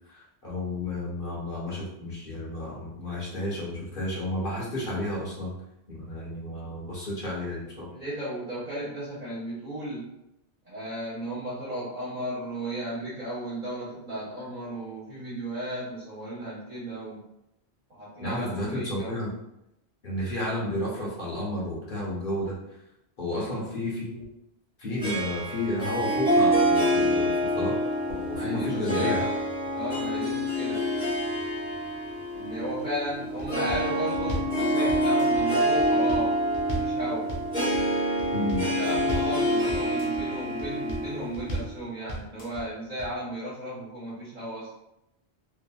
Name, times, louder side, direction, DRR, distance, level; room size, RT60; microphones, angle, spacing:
voice 1, 0.1-5.6 5.9-7.9 18.2-19.3 20.0-22.6 23.2-24.3 24.8-27.7 28.1-29.2 38.3-38.6, left 1 dB, 55° left, -6 dB, 1.1 m, -32 dB
voice 2, 7.9-10.1 10.6-17.2 17.9-19.2 23.3-23.6 28.3-29.3 29.7-30.8 32.3-36.4 36.7-37.2 38.6-44.7, right 1 dB, 40° right, -9 dB, 1.2 m, -35 dB
Harp, 25.0-41.8, equal, 5° right, 1.0 m, -26 dB
sound 1, 33.4-33.9 34.1-34.6 34.9-35.4 35.8-36.3 36.5-37.0 37.3-37.8 38.2-38.7 38.9-39.4 39.7-40.2 40.6-41.1 41.3-41.8 42.1-42.6 43.0-43.1, right 1 dB, 40° left, 0.5 m, -35 dB
2.8 x 2.5 x 2.3 m, 0.84 s
omnidirectional pair, 1.1 m